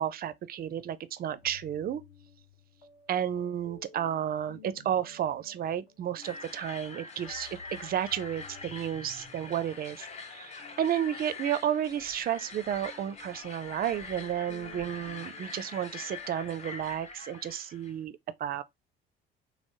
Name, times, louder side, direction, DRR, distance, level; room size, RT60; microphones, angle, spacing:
voice 1, 0.0-2.0 3.1-18.6, right 10 dB, 30° right, 0.4 m, -32 dB
sound 1, 1.3-16.8, left 4 dB, 65° left, 1.1 m, -55 dB
sound 2, 6.2-17.9, left 4 dB, 20° left, 0.6 m, -44 dB
3.5 x 2.0 x 2.6 m
figure-of-eight pair, 50°, 30 cm